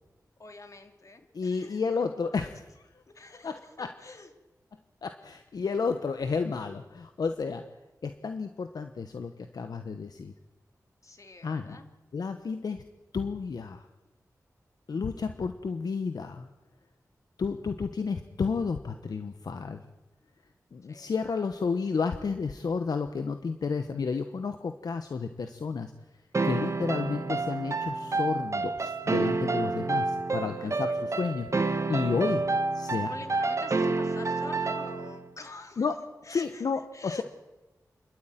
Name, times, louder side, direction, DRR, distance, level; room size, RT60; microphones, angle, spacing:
voice 1, 0.4-1.8 3.1-4.3 11.0-11.8 20.9-21.1 30.6-31.1 33.1-35.9 36.2-36.6 36.9-37.2, left 3 dB, 55° left, 6 dB, 3.2 m, -46 dB
voice 2, 1.3-2.7 3.4-3.9 5.0-7.7 8.0-10.3 11.4-11.8 12.1-12.8 13.1-13.9 14.9-16.5 17.4-19.8 20.7-25.9 26.4-32.4 32.7-33.1 35.8-36.0 36.3-37.2, left 5 dB, 80° left, 8 dB, 1.2 m, -31 dB
sound 1, 26.3-35.2, right 3 dB, 50° right, 1.6 m, -29 dB
29.0 x 13.0 x 9.2 m, 1.0 s
wide cardioid pair, 65°, 7 cm